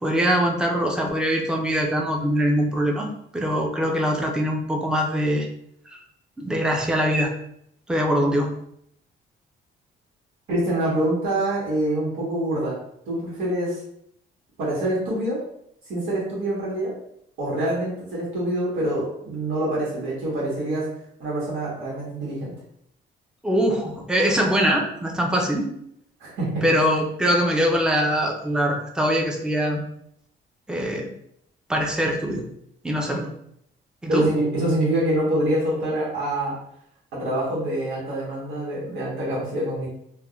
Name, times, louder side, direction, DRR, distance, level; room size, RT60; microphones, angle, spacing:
voice 1, 0.0-5.5 5.9-6.0 6.4-7.3 7.9-8.5 23.4-25.7 26.6-29.8 30.7-31.1 31.7-32.4 32.8-33.3 34.0-34.3, equal, 5° right, 0 dB, 0.5 m, -23 dB
voice 2, 10.5-12.8 13.1-13.8 14.6-15.4 15.9-16.9 17.4-20.9 21.2-22.5 26.2-26.6 34.1-36.5 37.1-39.9, right 1 dB, 85° right, -6 dB, 1.3 m, -25 dB
3.4 x 2.2 x 2.3 m, 0.73 s
cardioid pair, 90°, 20 cm